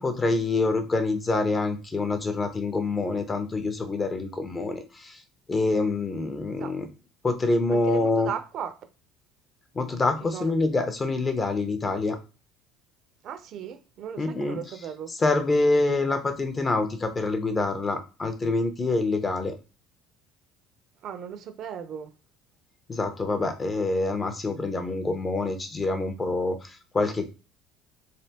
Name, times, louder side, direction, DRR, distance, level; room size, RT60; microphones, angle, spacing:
voice 1, 0.0-5.2 5.5-6.9 7.2-8.3 9.7-12.2 14.2-14.6 15.2-19.5 22.9-27.2, left 3 dB, 20° left, 0.5 m, -26 dB
voice 2, 7.7-8.8 10.2-10.5 13.2-15.1 21.0-22.1, right 8 dB, 45° right, 0.5 m, -37 dB
3.5 x 3.3 x 2.8 m
cardioid pair, 150°, 0 cm